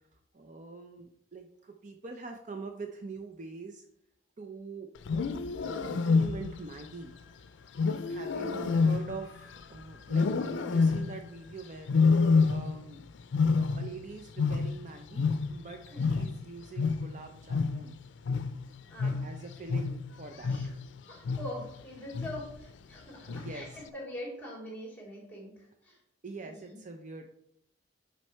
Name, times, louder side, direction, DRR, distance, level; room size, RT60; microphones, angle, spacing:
voice 1, 0.3-3.8 4.4-4.9 5.6-7.1 8.1-13.1 13.5-17.9 19.0-20.8 23.3-23.8 26.2-27.3, right 3 dB, 40° right, 4 dB, 0.6 m, -44 dB
Wild animals, 5.0-6.7 7.8-9.6 10.1-11.3 11.9-12.9 13.2-15.7 16.0-20.9 21.2-21.7 22.1-22.6 23.3-23.7, left 4 dB, 80° left, 0.4 m, -28 dB
voice 2, 18.9-19.2 20.5-20.7 21.1-26.0 26.4-26.8, equal, 10° left, -2 dB, 2.8 m, -43 dB
6.3 x 5.4 x 4.4 m, 0.73 s
head